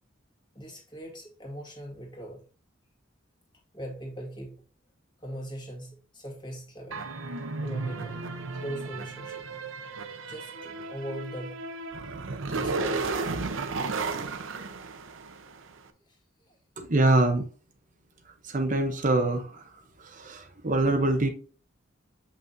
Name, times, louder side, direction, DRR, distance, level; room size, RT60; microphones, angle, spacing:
voice 1, 0.5-2.4 3.7-4.6 5.2-7.0 7.6-8.3 8.5-9.4 10.2-11.6 12.5-13.1 16.1-16.6, right 1 dB, 20° left, 1.8 m, -40 dB
sound 1, 6.9-15.6, right 3 dB, 75° right, 0.8 m, -34 dB
voice 2, 16.8-17.4 18.4-19.7 20.0-21.3, right 2 dB, 40° right, 0.7 m, -24 dB
7.1 x 5.8 x 2.6 m
head